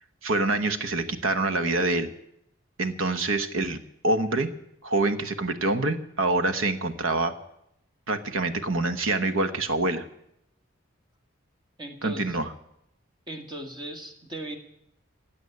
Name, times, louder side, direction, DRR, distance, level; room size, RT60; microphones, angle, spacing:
voice 1, 0.2-2.1 2.8-3.8 4.0-4.5 4.8-7.3 8.1-10.0 12.0-12.5, right 2 dB, 75° right, 10 dB, 1.2 m, -26 dB
voice 2, 11.8-12.4 13.3-14.6, right 1 dB, 20° right, 4 dB, 1.8 m, -38 dB
16.0 x 8.5 x 9.6 m, 0.79 s
head